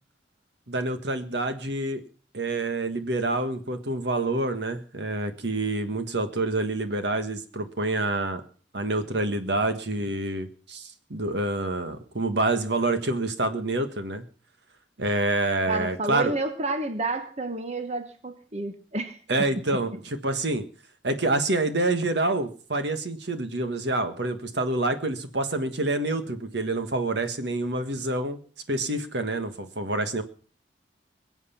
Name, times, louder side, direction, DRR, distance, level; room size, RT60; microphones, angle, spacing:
voice 1, 0.7-2.0 2.3-8.4 8.7-14.2 15.0-16.3 19.3-20.6 21.0-28.4 28.7-30.2, right 2 dB, 65° right, 8 dB, 1.6 m, -27 dB
voice 2, 15.7-19.5, right 2 dB, 35° right, 8 dB, 1.2 m, -30 dB
22.5 x 8.1 x 5.8 m, 0.41 s
head